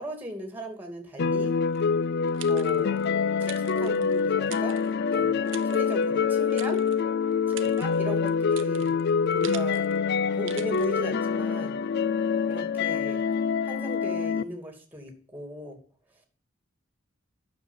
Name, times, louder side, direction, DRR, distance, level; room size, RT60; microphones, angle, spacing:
voice 1, 0.0-1.5 2.4-3.0 3.4-4.8 5.1-6.9 7.5-8.9 9.3-9.9 10.3-11.8 12.5-13.2 13.6-15.8, equal, 10° right, 4 dB, 2.6 m, -38 dB
sound 1, 1.2-14.4, left 6 dB, 55° left, 0.4 m, -25 dB
sound 2, 1.7-3.1 3.4-5.2 5.5-6.0 6.5-7.0 7.3-10.0 10.4-10.9, right 12 dB, 65° right, 0.8 m, -45 dB
9.4 x 6.6 x 7.4 m, 0.42 s
head